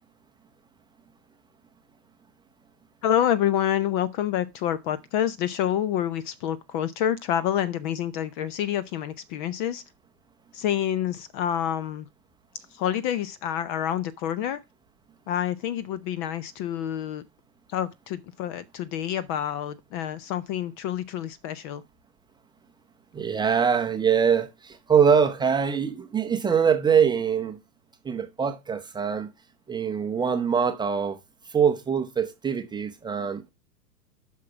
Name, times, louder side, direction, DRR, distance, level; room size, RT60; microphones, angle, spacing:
voice 1, 3.0-9.8 10.5-12.1 12.7-14.6 15.3-17.2 17.7-21.8, left 10 dB, 30° left, 0.6 m, -28 dB
voice 2, 23.1-27.6 28.0-29.3 29.7-31.2 31.5-33.5, right 7 dB, 10° right, 0.7 m, -23 dB
8.4 x 5.9 x 4.7 m
hypercardioid pair, 110°, 49 cm